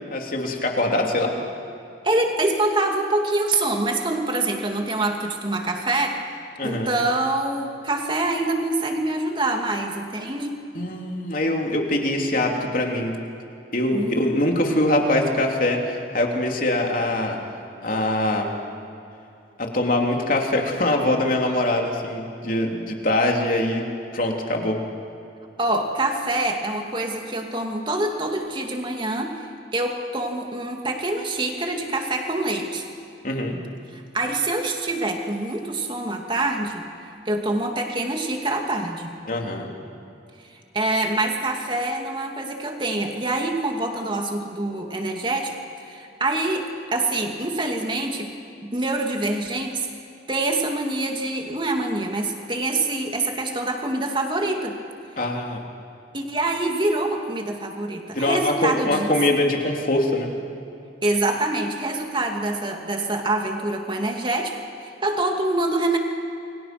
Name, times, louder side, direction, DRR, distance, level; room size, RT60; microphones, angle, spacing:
voice 1, 0.1-1.3 6.6-6.9 10.7-13.1 13.7-17.4 17.8-18.5 19.6-23.8 24.1-24.8 33.2-33.6 39.2-39.7 55.2-55.6 58.1-60.3, left 1 dB, 50° left, 1 dB, 3.3 m, -23 dB
voice 2, 2.0-6.2 6.6-10.5 13.9-14.3 25.6-29.4 29.7-32.8 33.9-36.8 37.3-39.2 40.7-45.6 45.8-48.3 48.6-49.9 50.3-54.8 56.1-59.1 61.0-66.0, right 2 dB, 25° right, 2 dB, 2.7 m, -25 dB
29.0 x 23.5 x 6.2 m, 2.7 s
head